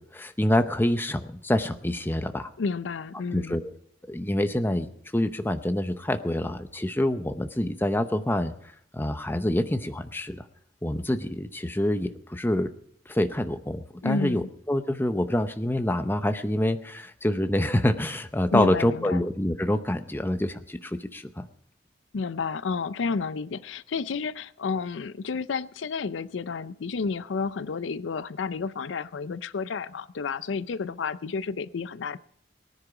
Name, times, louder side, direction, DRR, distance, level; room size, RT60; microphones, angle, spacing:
voice 1, 0.0-2.5 3.3-3.7 4.1-8.5 8.9-10.4 10.8-12.7 13.1-21.5, left 1 dB, 10° left, 8 dB, 0.8 m, -26 dB
voice 2, 2.6-3.6 14.0-14.5 18.5-19.2 22.1-32.2, left 5 dB, 85° left, 16 dB, 0.5 m, -31 dB
19.0 x 9.9 x 4.9 m, 0.66 s
head